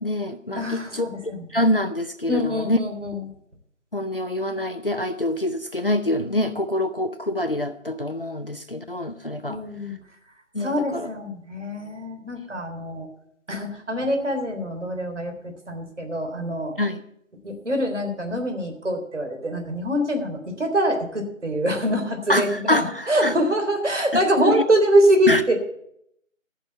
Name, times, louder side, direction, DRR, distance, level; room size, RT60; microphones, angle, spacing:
voice 1, 0.0-2.8 3.9-9.6 10.5-11.1 16.8-17.0 22.3-23.4 24.1-24.6 25.3-25.4, left 1 dB, 45° left, 8 dB, 0.6 m, -25 dB
voice 2, 0.5-1.5 2.3-3.3 9.5-9.9 10.6-13.1 13.5-15.3 15.7-16.7 17.4-25.5, equal, 60° right, 4 dB, 3.5 m, -24 dB
13.5 x 6.1 x 8.2 m, 0.72 s
figure-of-eight pair, 170°, 40 cm